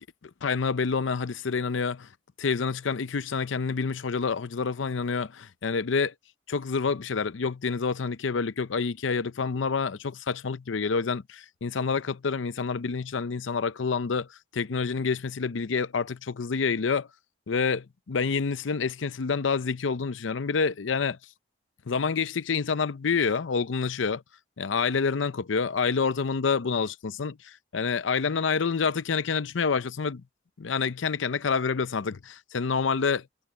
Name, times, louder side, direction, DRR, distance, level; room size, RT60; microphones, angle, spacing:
voice 1, 0.0-2.1 2.4-6.1 6.5-17.1 17.5-21.2 21.9-24.2 24.6-30.2 30.6-33.3, left 5 dB, 90° left, 0.6 m, -28 dB
head